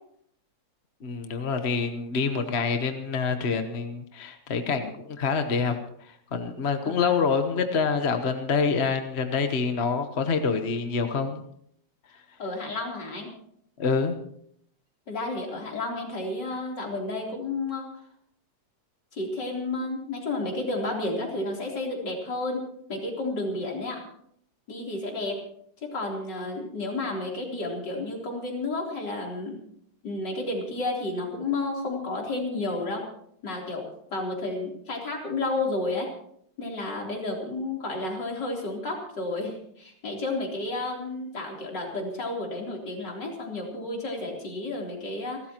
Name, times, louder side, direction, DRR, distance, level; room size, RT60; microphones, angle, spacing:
voice 1, 1.0-5.7 6.0-11.4 13.8-14.1, left 5 dB, 40° left, 7 dB, 1.2 m, -26 dB
voice 2, 6.8-7.2 12.4-13.3 15.1-17.9 19.1-22.6 22.9-24.0 24.7-25.4 25.8-29.6 30.0-33.1 33.4-36.1 36.6-45.4, left 2 dB, 70° left, -1 dB, 4.2 m, -31 dB
29.5 x 13.0 x 3.0 m, 0.68 s
omnidirectional pair, 2.0 m